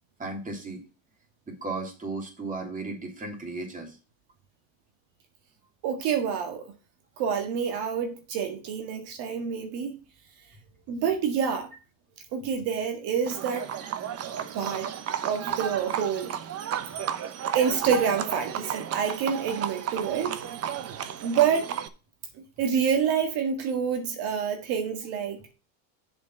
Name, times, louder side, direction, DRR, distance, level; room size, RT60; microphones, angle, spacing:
voice 1, 0.2-0.8 1.5-4.0 15.4-15.5 16.7-16.8, right 3 dB, 20° right, 3.0 m, -35 dB
voice 2, 5.8-6.7 7.2-10.0 10.9-11.7 12.3-13.7 14.5-14.9 15.2-16.3 17.5-20.4 21.2-21.7 22.6-25.5, right 7 dB, 65° right, 1.8 m, -27 dB
Livestock farm animals working animals, 13.3-21.9, right 9 dB, 35° right, 0.9 m, -33 dB
7.3 x 5.2 x 6.0 m
cardioid pair, 135°, 42 cm